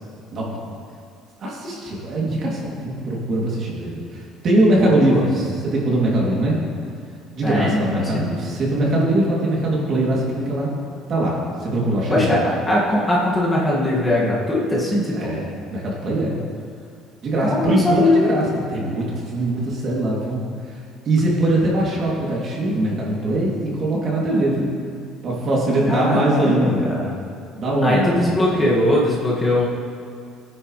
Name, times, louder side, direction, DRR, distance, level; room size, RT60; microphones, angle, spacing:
voice 1, 1.4-6.6 7.4-10.7 11.1-12.3 15.1-15.5 15.7-16.4 17.2-20.4 21.0-24.7 25.2-26.9 27.5-28.2, right 1 dB, 40° right, -4 dB, 3.0 m, -21 dB
voice 2, 4.8-5.2 7.4-8.3 12.1-15.4 17.4-18.2 25.9-27.1 27.8-29.7, left 1 dB, 15° left, -6 dB, 2.1 m, -20 dB
18.5 x 10.0 x 3.3 m, 2.3 s
cardioid pair, 145°, 0 cm